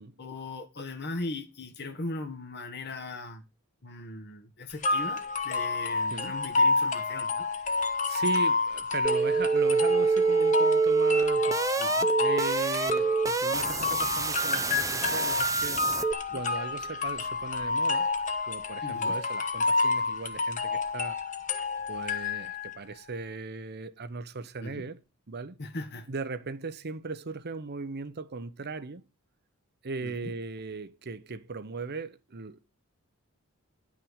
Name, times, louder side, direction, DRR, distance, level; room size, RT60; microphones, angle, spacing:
voice 1, 0.2-3.4 3.8-7.4 11.8-12.1 16.3-16.4 18.8-19.1 24.6-24.8 25.6-26.1 30.0-30.3, left 2 dB, 50° left, 1.5 m, -39 dB
sound 1, 4.8-22.8, left 3 dB, 35° left, 1.3 m, -29 dB
voice 2, 8.0-11.6 12.2-15.9 16.3-18.1 18.5-21.2 21.9-25.0 25.3-25.6 26.1-29.0 29.8-32.6, right 4 dB, 50° right, 0.8 m, -38 dB
sound 2, 9.0-16.1, right 4 dB, 15° right, 0.5 m, -26 dB
10.5 x 6.1 x 6.3 m
head